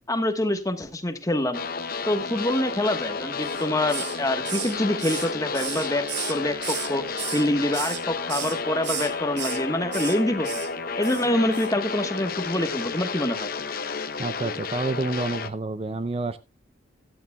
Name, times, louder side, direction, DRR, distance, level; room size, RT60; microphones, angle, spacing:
voice 1, 0.1-1.6 2.1-7.0 7.3-10.6 11.0-13.5, left 1 dB, 15° left, 1.2 m, -26 dB
sound 1, 1.5-15.5, left 4 dB, 50° left, 0.9 m, -32 dB
Hiss, 3.4-4.2 4.4-6.9 7.2-8.0 8.3-8.6 8.8-9.6 9.9-10.2 10.4-10.7 11.0-11.3 11.5-11.7, right 10 dB, 65° right, 1.8 m, -34 dB
voice 2, 14.2-16.4, right 2 dB, 30° right, 0.5 m, -28 dB
15.5 x 12.0 x 2.2 m
head